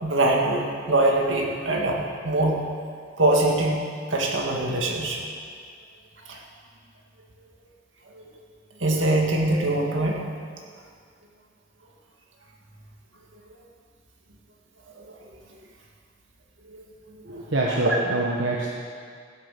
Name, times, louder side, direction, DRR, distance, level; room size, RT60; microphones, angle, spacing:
voice 1, 0.0-2.6 3.2-3.8 4.1-5.2 6.3-6.4 8.2-8.3 8.8-10.2 15.0-15.1 16.7-16.8 17.7-18.0, right 2 dB, 85° right, -1 dB, 2.2 m, -23 dB
voice 2, 17.3-18.7, right 2 dB, 65° right, -3 dB, 1.3 m, -26 dB
16.0 x 7.8 x 6.7 m, 2.1 s
head